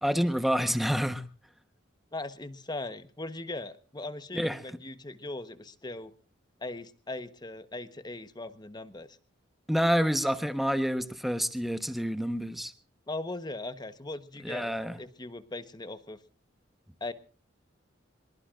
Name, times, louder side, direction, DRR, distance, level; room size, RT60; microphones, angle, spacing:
voice 1, 0.0-1.2 4.3-4.6 9.7-12.7 14.4-15.0, equal, ahead, 10 dB, 1.1 m, -28 dB
voice 2, 2.1-6.1 6.6-9.2 13.1-14.7 15.0-16.2 17.0-17.1, left 2 dB, 20° left, 11 dB, 1.1 m, -39 dB
24.5 x 22.5 x 2.5 m, 0.37 s
head